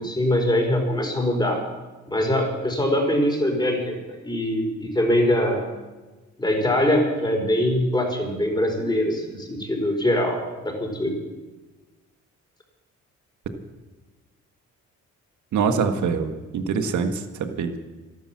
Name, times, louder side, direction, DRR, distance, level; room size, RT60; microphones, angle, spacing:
voice 1, 0.0-1.6 2.1-5.7 6.4-11.1, left 1 dB, 15° left, 1 dB, 4.8 m, -23 dB
voice 2, 15.5-17.8, right 5 dB, 70° right, 7 dB, 1.7 m, -24 dB
12.5 x 12.5 x 7.4 m, 1.2 s
cardioid pair, 90°, 30 cm